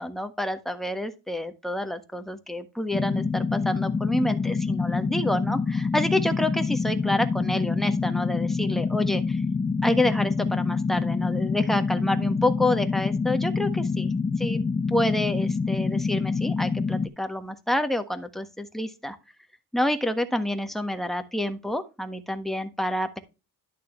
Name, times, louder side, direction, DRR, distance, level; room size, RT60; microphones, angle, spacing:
voice 1, 0.0-9.4 9.8-14.1 14.4-14.6 14.9-19.2 19.7-23.2, left 1 dB, ahead, 7 dB, 1.3 m, -28 dB
sound 1, 2.9-17.1, left 4 dB, 20° left, 0.6 m, -26 dB
11.0 x 6.6 x 3.2 m, 0.28 s
cardioid pair, 115°, 37 cm